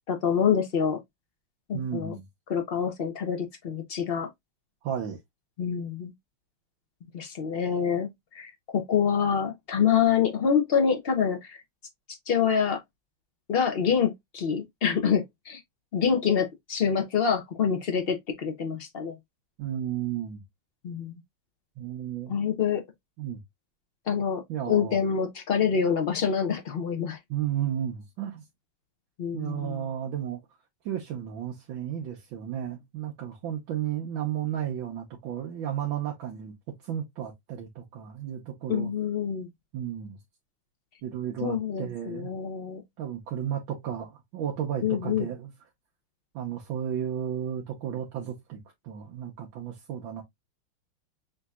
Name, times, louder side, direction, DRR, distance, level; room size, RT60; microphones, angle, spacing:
voice 1, 0.1-1.0 1.7-2.2 2.5-4.3 5.6-6.1 7.1-8.1 8.3-11.6 12.3-12.8 13.5-15.6 15.9-19.1 20.8-21.1 22.3-22.8 24.1-27.2 29.2-29.8 38.7-39.5 41.4-42.8 44.8-45.3, left 7 dB, 70° left, 0.5 m, -26 dB
voice 2, 1.7-2.3 4.8-5.2 19.6-20.4 21.8-22.4 23.2-23.4 24.5-25.0 27.3-28.4 29.3-30.4 30.9-36.5 36.8-38.9 39.7-40.2 41.0-42.3 43.0-45.5 46.3-48.6 48.8-50.2, right 10 dB, 75° right, 1.6 m, -33 dB
6.4 x 2.8 x 2.3 m
omnidirectional pair, 2.2 m